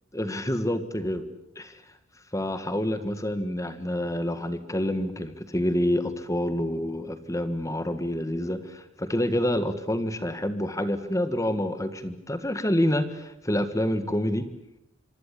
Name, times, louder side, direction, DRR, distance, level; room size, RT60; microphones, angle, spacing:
voice 1, 0.1-1.2 1.5-1.8 2.3-14.5, left 1 dB, 15° left, 10 dB, 1.6 m, -27 dB
27.0 x 24.5 x 8.4 m, 0.78 s
head